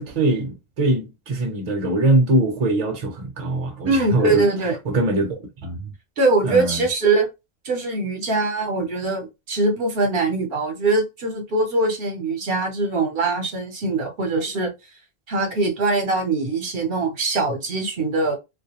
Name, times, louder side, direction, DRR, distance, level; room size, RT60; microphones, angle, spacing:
voice 1, 0.0-4.4 4.8-5.9 6.4-6.9, right 2 dB, 45° right, 0.7 m, -22 dB
voice 2, 3.8-4.8 6.2-7.3 7.6-14.7 15.3-18.4, right 3 dB, 70° right, 0.9 m, -22 dB
2.3 x 2.1 x 2.8 m
omnidirectional pair, 1.0 m